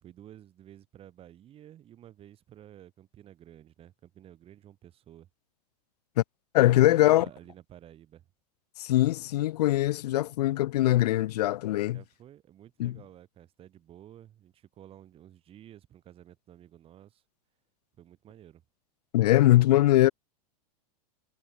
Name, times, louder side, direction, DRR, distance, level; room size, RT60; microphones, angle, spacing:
voice 1, 0.0-5.3 6.7-8.3 11.9-17.2 18.0-18.6, right 11 dB, 30° right, 3.2 m, -52 dB
voice 2, 6.5-7.3 8.8-12.0 12.8-12.9 19.1-20.1, left 15 dB, 80° left, 0.6 m, -22 dB
supercardioid pair, 140°, 20 cm